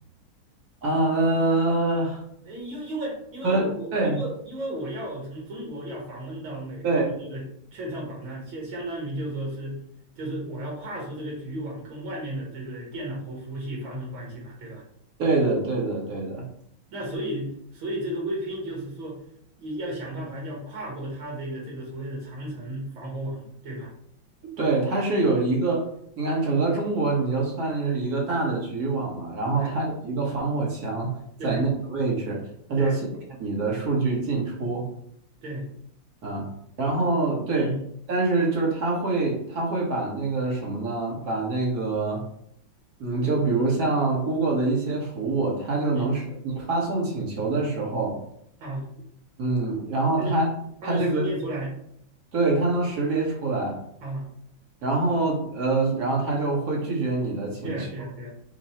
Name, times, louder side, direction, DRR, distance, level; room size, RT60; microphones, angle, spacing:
voice 1, 0.8-2.2 3.4-3.7 3.9-4.2 6.8-7.1 15.2-16.4 24.6-25.9 26.2-31.1 31.4-32.4 32.7-33.0 33.4-34.8 36.2-36.5 36.8-37.7 38.1-42.2 43.0-48.2 49.4-50.5 50.8-51.3 52.3-53.8 54.8-57.9, right 3 dB, 50° right, -2 dB, 1.6 m, -25 dB
voice 2, 2.4-7.4 7.7-9.8 10.2-14.8 16.9-19.2 19.6-23.9 29.5-29.8 31.4-31.6 32.8-33.0 35.4-35.7 37.5-37.8 45.9-46.1 48.6-48.9 50.2-50.4 50.8-51.8 54.0-54.3 57.6-58.3, right 1 dB, 80° right, -3 dB, 2.2 m, -34 dB
5.1 x 2.3 x 4.2 m, 0.72 s
omnidirectional pair, 2.2 m